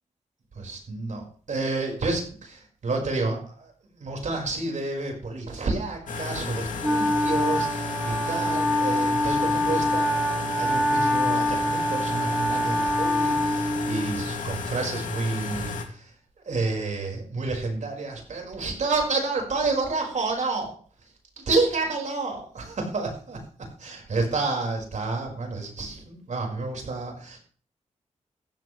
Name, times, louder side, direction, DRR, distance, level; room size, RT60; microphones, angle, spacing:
voice 1, 0.6-16.1 16.5-20.7 21.4-23.4 23.8-27.4, right 3 dB, 70° right, 1 dB, 5.4 m, -29 dB
sound 1, 6.1-15.8, left 4 dB, 85° left, 2.6 m, -33 dB
Wind instrument woodwind instrument, 6.8-14.3, left 1 dB, 10° right, 1.4 m, -25 dB
15.0 x 14.0 x 3.4 m, 0.43 s
cardioid pair, 65°, 13 cm